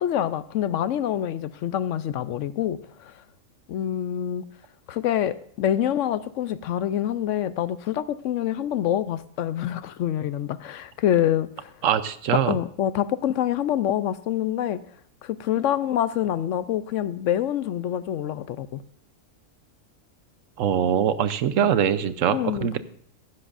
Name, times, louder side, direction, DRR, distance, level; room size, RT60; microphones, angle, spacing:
voice 1, 0.0-3.1 3.7-4.5 4.9-11.7 12.5-14.8 15.2-18.8 21.6-21.7 22.3-22.7, left 11 dB, 75° left, 15 dB, 0.9 m, -26 dB
voice 2, 11.8-12.6 20.6-22.8, right 9 dB, 80° right, 13 dB, 1.1 m, -23 dB
15.0 x 12.0 x 2.5 m, 0.63 s
omnidirectional pair, 1.3 m